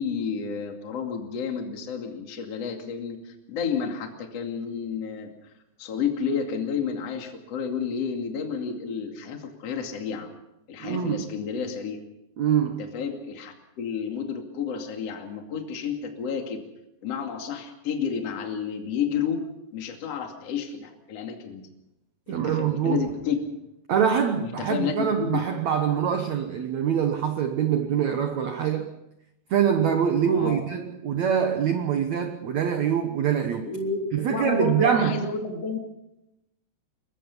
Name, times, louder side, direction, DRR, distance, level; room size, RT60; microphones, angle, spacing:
voice 1, 0.0-5.3 5.8-10.3 10.7-12.0 12.8-16.6 17.0-19.5 19.7-21.7 22.3-23.4 24.4-25.4 30.3-30.6 33.6-35.8, left 6 dB, 40° left, 3.0 m, -31 dB
voice 2, 10.8-11.3 12.4-12.8 22.3-23.1 23.9-28.9 29.5-33.7 34.1-35.2, right 8 dB, 75° right, 1.6 m, -24 dB
23.0 x 21.5 x 5.5 m
omnidirectional pair, 5.0 m